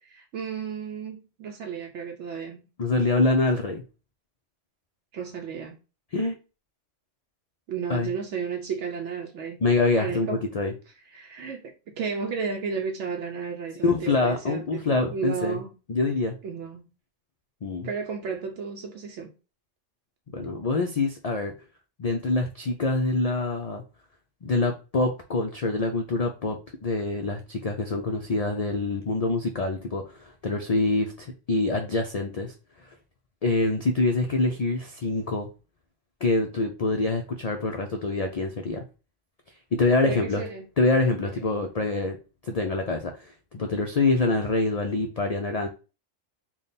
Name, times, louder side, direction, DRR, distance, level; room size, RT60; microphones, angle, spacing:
voice 1, 0.0-2.6 5.1-5.8 7.7-9.6 10.0-10.5 11.1-15.7 16.4-16.8 17.8-19.3 40.0-40.7 41.3-41.4, right 6 dB, 70° right, 0.9 m, -33 dB
voice 2, 2.8-3.8 6.1-6.4 7.9-8.1 9.6-10.7 13.8-15.6 15.9-16.3 17.6-17.9 20.3-21.5 22.0-23.8 24.4-26.6 26.8-32.5 33.4-35.5 36.2-38.8 39.7-40.4 40.8-42.2 42.4-45.7, left 3 dB, 75° left, 0.3 m, -25 dB
3.5 x 2.3 x 3.9 m
omnidirectional pair, 1.3 m